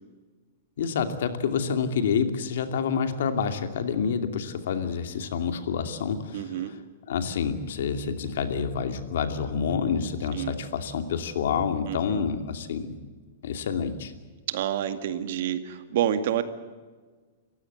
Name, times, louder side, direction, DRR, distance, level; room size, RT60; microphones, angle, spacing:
voice 1, 0.8-6.8 7.1-12.9 13.4-14.1, left 6 dB, 70° left, 7 dB, 2.6 m, -28 dB
voice 2, 6.3-6.7 10.3-10.6 11.9-12.2 14.5-16.4, right 10 dB, 55° right, 9 dB, 2.0 m, -28 dB
28.0 x 15.5 x 8.1 m, 1.4 s
supercardioid pair, 165°, 0 cm